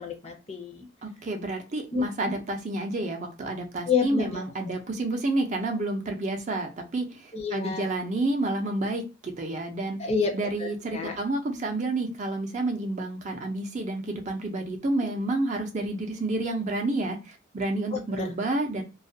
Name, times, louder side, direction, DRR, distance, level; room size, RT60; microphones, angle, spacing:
voice 1, 0.0-0.9 1.9-2.1 3.9-4.4 7.3-7.9 10.0-10.3 10.6-11.2 17.9-18.3, left 5 dB, 35° left, 3 dB, 0.5 m, -29 dB
voice 2, 1.0-10.0 10.3-18.8, right 2 dB, 35° right, 4 dB, 0.5 m, -29 dB
2.3 x 2.1 x 2.6 m, 0.30 s
head